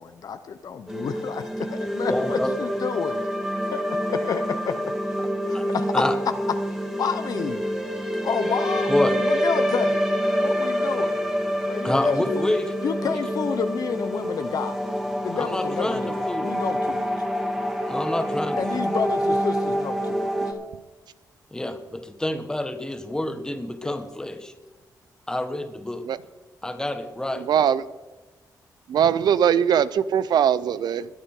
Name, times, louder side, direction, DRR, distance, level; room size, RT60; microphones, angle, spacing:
voice 1, 0.0-3.2 3.7-3.8 4.1-5.9 7.0-7.6 8.1-8.9 9.2-10.0 10.4-11.2 11.7-12.5 12.8-14.7 15.2-17.1 18.6-20.5 23.8-24.0, left 6 dB, 60° left, 9 dB, 0.8 m, -30 dB
sound 1, 0.9-20.5, equal, 5° right, 1.9 m, -27 dB
voice 2, 2.1-2.5 5.5-5.6 5.9-6.1 8.9-9.2 11.8-12.7 13.0-13.2 15.4-16.6 17.9-18.8 21.5-24.5 25.3-26.0 26.6-27.5, left 1 dB, 10° left, 7 dB, 1.3 m, -27 dB
voice 3, 27.4-27.8 28.9-31.1, right 8 dB, 80° right, 17 dB, 0.6 m, -21 dB
21.5 x 8.4 x 3.8 m, 1.2 s
cardioid pair, 105°, 7 cm